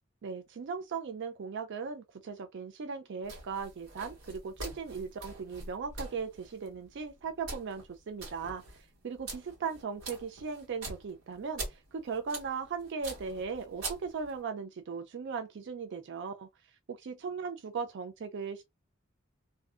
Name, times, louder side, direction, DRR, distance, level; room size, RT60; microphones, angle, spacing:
voice 1, 0.2-16.5 16.9-18.6, right 5 dB, 60° right, 0.4 m, -38 dB
sound 1, 3.2-14.4, right 2 dB, 85° right, 1.4 m, -45 dB
2.6 x 2.4 x 2.3 m
head